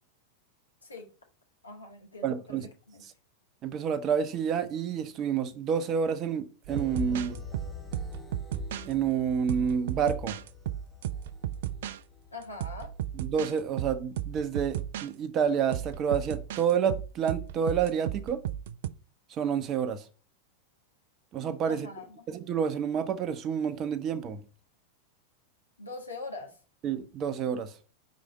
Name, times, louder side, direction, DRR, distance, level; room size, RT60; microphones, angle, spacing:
voice 1, 1.6-2.6 2.9-3.0 12.3-12.9 21.7-22.2 25.8-26.6, left 3 dB, 80° left, 1.7 m, -42 dB
voice 2, 2.2-2.7 3.6-7.4 8.8-10.4 13.2-18.4 19.4-20.0 21.3-21.9 22.3-24.4 26.8-27.7, right 7 dB, 30° right, 0.7 m, -29 dB
sound 1, 6.7-14.5 15.0-15.1, left 5 dB, 5° left, 1.0 m, -44 dB
sound 2, 6.7-8.9 9.5-12.0 12.6-13.5 13.8-15.1 15.7-18.9, right 12 dB, 55° right, 0.3 m, -35 dB
4.9 x 4.2 x 5.0 m
figure-of-eight pair, 90°, 0 cm